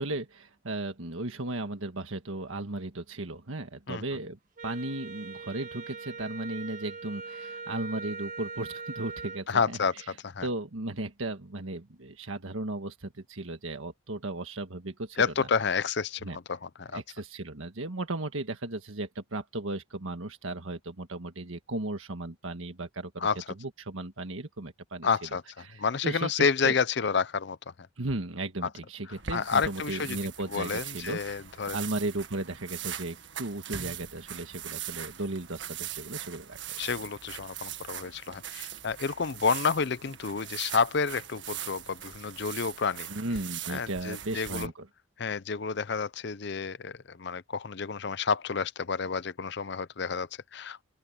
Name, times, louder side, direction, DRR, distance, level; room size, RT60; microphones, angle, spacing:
voice 1, 0.0-10.0 10.4-15.5 16.2-16.4 16.9-23.3 23.6-25.1 25.6-26.3 26.6-26.7 28.0-31.4 31.7-36.8 43.1-44.9, right 2 dB, 80° right, 1.6 m, -36 dB
Wind instrument woodwind instrument, 4.6-9.5, right 4 dB, 40° right, 1.8 m, -41 dB
voice 2, 9.5-9.9 10.2-10.5 15.2-17.0 23.2-23.4 25.0-25.4 25.8-27.7 29.3-30.2 30.5-31.8 36.8-43.1 43.7-44.7 45.2-50.8, left 5 dB, 55° left, 0.6 m, -30 dB
sound 1, 29.1-44.7, right 9 dB, 60° right, 1.8 m, -41 dB
open air
head